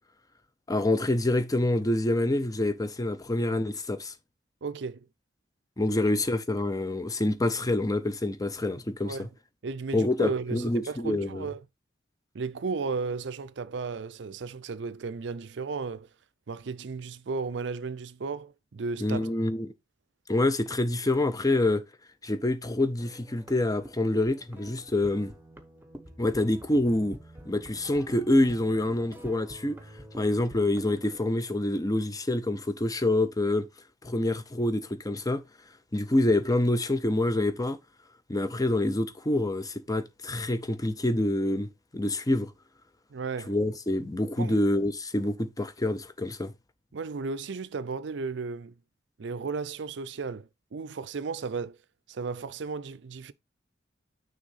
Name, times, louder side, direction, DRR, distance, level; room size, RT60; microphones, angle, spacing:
voice 1, 0.7-4.1 5.8-9.3 9.9-11.5 19.0-19.7 20.3-21.8 22.2-25.3 26.2-27.2 27.5-29.8 30.2-33.7 34.0-35.4 35.9-37.8 38.3-42.5 43.5-46.5, left 1 dB, 20° left, 0.7 m, -26 dB
voice 2, 4.6-5.0 9.0-9.3 9.6-11.6 12.3-16.1 16.5-19.3 43.1-43.5 44.4-44.6 46.9-48.7 49.2-51.8 52.1-53.3, right 4 dB, 70° right, 0.5 m, -34 dB
Keep At It loop, 23.0-31.3, right 1 dB, 10° right, 0.9 m, -48 dB
6.3 x 3.6 x 5.5 m
head